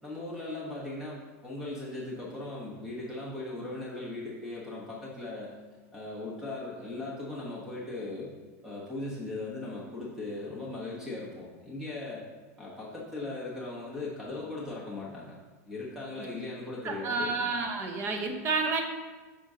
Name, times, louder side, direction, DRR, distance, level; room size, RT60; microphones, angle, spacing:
voice 1, 0.0-5.5 5.9-8.3 8.6-12.2 12.6-15.4 15.7-17.4, left 2 dB, 5° right, -5 dB, 1.1 m, -38 dB
voice 2, 16.8-18.8, right 4 dB, 30° right, 4 dB, 0.8 m, -30 dB
8.3 x 5.2 x 2.8 m, 1.3 s
supercardioid pair, 150°, 8 cm